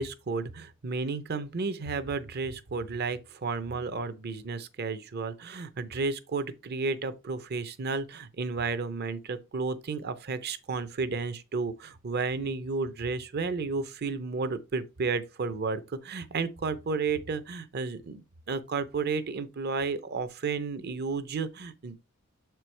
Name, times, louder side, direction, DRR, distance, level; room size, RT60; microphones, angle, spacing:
voice 1, 0.0-22.0, right 4 dB, 50° right, 0.6 m, -32 dB
6.9 x 4.5 x 3.3 m
head